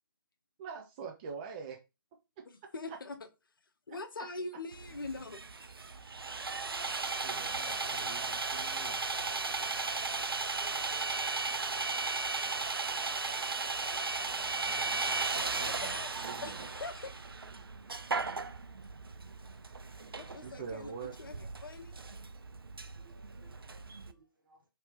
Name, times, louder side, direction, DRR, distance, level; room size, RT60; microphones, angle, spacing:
voice 1, 0.6-1.8 2.4-2.5 2.9-3.0 3.9-4.3 7.1-9.3 14.2-16.7 20.4-21.2, right 6 dB, 25° right, 0.4 m, -46 dB
voice 2, 2.5-3.2 3.9-5.4 7.7-7.8 10.5-11.2 15.3-16.1 16.4-17.1 20.2-20.9 21.2-21.3 21.6-22.0, left 3 dB, 70° left, 0.7 m, -43 dB
Sawing, 4.7-24.1, right 4 dB, 85° right, 0.4 m, -36 dB
voice 3, 20.1-20.6 22.9-24.7, right 3 dB, 65° right, 1.3 m, -62 dB
2.9 x 2.8 x 3.3 m
figure-of-eight pair, 135°, 12 cm